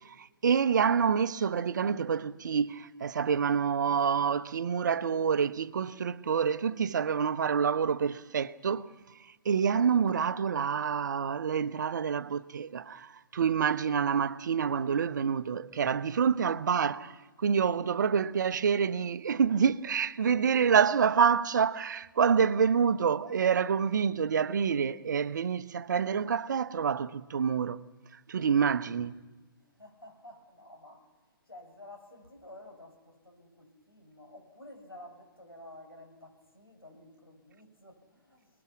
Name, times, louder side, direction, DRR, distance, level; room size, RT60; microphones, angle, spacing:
voice 1, 0.2-8.9 9.4-17.1 17.4-27.8 28.3-29.1, right 7 dB, 50° right, 0.9 m, -27 dB
voice 2, 29.6-31.2 31.5-38.6, left 1 dB, 85° left, 6.6 m, -51 dB
29.5 x 20.0 x 6.1 m
figure-of-eight pair, 130°, 12 cm